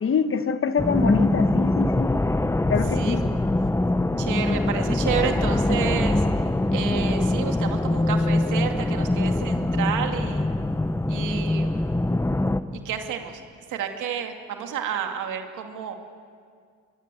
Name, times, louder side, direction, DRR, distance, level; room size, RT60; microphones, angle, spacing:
voice 1, 0.0-2.1 2.7-3.2, left 5 dB, 45° left, 10 dB, 1.4 m, -24 dB
sound 1, 0.8-12.6, left 2 dB, 10° left, 0.9 m, -23 dB
voice 2, 4.2-6.3 6.7-10.5 11.1-12.0 12.8-13.4 13.7-16.0, right 8 dB, 85° right, 4 dB, 2.5 m, -30 dB
sound 2, 4.9-9.6, left 1 dB, 25° left, 2.2 m, -42 dB
24.0 x 21.0 x 7.8 m, 2.1 s
cardioid pair, 90°, 30 cm